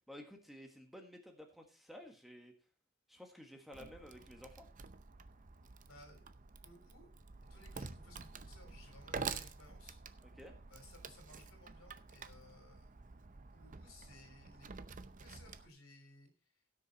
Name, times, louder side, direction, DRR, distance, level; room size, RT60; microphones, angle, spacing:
voice 1, 0.1-2.5 3.1-4.7 10.2-10.5, equal, ahead, 3 dB, 1.5 m, -53 dB
Wood, 3.7-15.7, right 5 dB, 40° right, 0.7 m, -49 dB
voice 2, 5.9-6.2 6.6-7.1 7.5-10.0 10.7-12.9 13.5-14.7 15.2-16.6, left 2 dB, 80° left, 5 dB, 3.8 m, -60 dB
16.5 x 6.6 x 4.1 m, 0.34 s
head